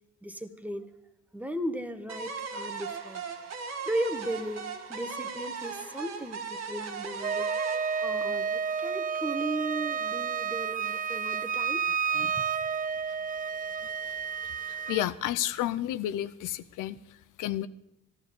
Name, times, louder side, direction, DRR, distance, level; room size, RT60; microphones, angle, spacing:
voice 1, 0.2-0.9 1.3-3.2 3.9-7.5 8.0-11.8 12.1-12.5 14.7-14.9, right 1 dB, 5° right, 9 dB, 1.2 m, -36 dB
sound 1, 2.1-9.1, right 5 dB, 60° right, 1.8 m, -38 dB
Wind instrument woodwind instrument, 7.2-15.1, right 6 dB, 30° right, 0.4 m, -31 dB
voice 2, 14.7-17.7, left 13 dB, 90° left, 14 dB, 0.6 m, -32 dB
13.5 x 12.0 x 6.7 m, 0.80 s
cardioid pair, 90°, 30 cm